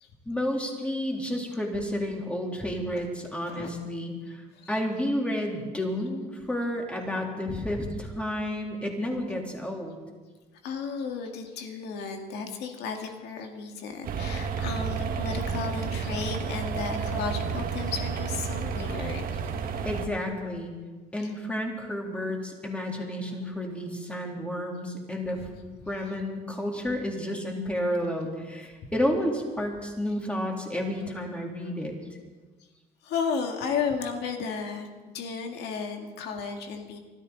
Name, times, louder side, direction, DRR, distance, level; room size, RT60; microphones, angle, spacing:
voice 1, 0.2-10.0 19.8-20.7 21.1-25.5 25.9-31.9, left 1 dB, 5° left, 0 dB, 3.1 m, -31 dB
voice 2, 10.6-19.4 21.2-21.3 25.9-26.1 31.6-31.7 33.0-37.0, left 5 dB, 80° left, 4 dB, 2.0 m, -34 dB
sound 1, 14.0-20.1, right 6 dB, 60° right, 1.5 m, -31 dB
24.5 x 13.0 x 4.0 m, 1.3 s
cardioid pair, 110°, 17 cm